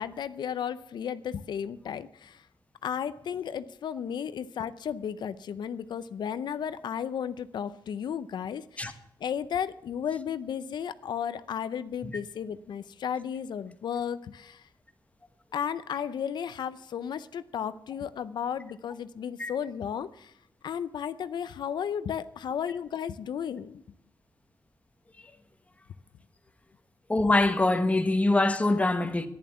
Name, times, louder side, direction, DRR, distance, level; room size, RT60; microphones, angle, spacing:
voice 1, 0.0-2.5 2.8-14.6 15.5-20.3 20.6-23.8, left 8 dB, 85° left, 0.5 m, -34 dB
voice 2, 27.1-29.3, left 2 dB, 20° left, 1.2 m, -24 dB
11.0 x 10.5 x 6.9 m
wide cardioid pair, 110°, 7 cm